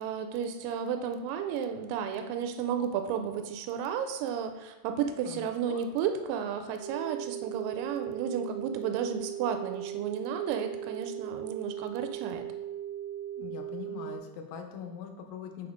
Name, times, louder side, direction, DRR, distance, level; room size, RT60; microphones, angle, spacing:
voice 1, 0.0-12.5, right 7 dB, 85° right, 7 dB, 2.2 m, -33 dB
voice 2, 5.3-5.8 13.4-15.7, left 7 dB, 85° left, 5 dB, 2.4 m, -42 dB
sound 1, 6.8-14.2, right 11 dB, 50° right, 1.0 m, -38 dB
6.7 x 4.9 x 3.6 m, 1.1 s
omnidirectional pair, 3.8 m